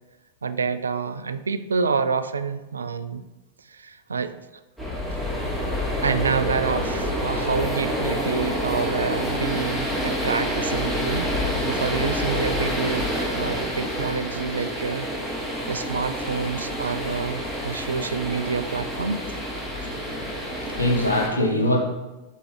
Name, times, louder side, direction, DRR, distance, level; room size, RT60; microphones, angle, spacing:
voice 1, 0.4-3.2 3.7-4.3 6.0-11.3 11.7-15.1 15.7-19.2, right 5 dB, 75° right, 11 dB, 0.3 m, -28 dB
sound 1, 4.8-21.3, equal, 10° left, 2.4 m, -28 dB
voice 2, 19.9-21.8, left 1 dB, 80° left, 3 dB, 1.0 m, -24 dB
11.0 x 3.8 x 3.1 m, 1.1 s
figure-of-eight pair, 90°, 0 cm